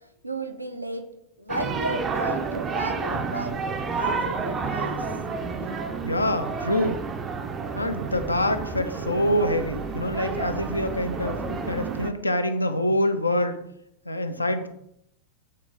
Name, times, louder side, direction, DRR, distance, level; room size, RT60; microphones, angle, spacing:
voice 1, 0.2-1.0 1.4-3.6 3.9-5.1, right 1 dB, 85° right, 6 dB, 0.4 m, -33 dB
sound 1, 1.5-12.1, right 4 dB, 25° right, 0.4 m, -30 dB
voice 2, 6.0-7.0 7.7-13.6 14.1-14.7, left 1 dB, 80° left, 8 dB, 0.4 m, -25 dB
3.7 x 3.1 x 3.7 m, 0.76 s
figure-of-eight pair, 90°, 0 cm